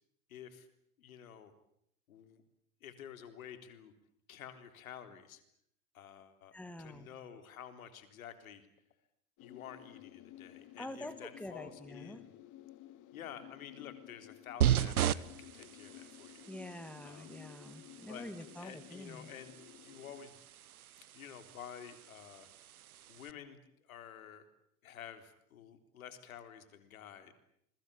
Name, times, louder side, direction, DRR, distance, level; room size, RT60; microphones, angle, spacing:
voice 1, 0.3-0.7 1.0-1.5 2.1-2.4 2.8-3.9 4.3-5.4 5.9-8.6 9.4-12.3 13.1-16.5 17.0-17.3 18.1-19.6 19.8-20.4 21.1-22.5 23.1-24.4 24.8-27.3, left 9 dB, 70° left, 10 dB, 3.8 m, -51 dB
voice 2, 6.5-7.1 10.8-12.2 16.5-19.3, left 1 dB, 5° left, 11 dB, 2.4 m, -46 dB
sound 1, 9.4-20.3, left 14 dB, 45° left, 2.2 m, -55 dB
sound 2, 14.6-23.3, right 10 dB, 80° right, 1.0 m, -37 dB
28.0 x 22.5 x 8.6 m, 0.72 s
figure-of-eight pair, 80°, 43 cm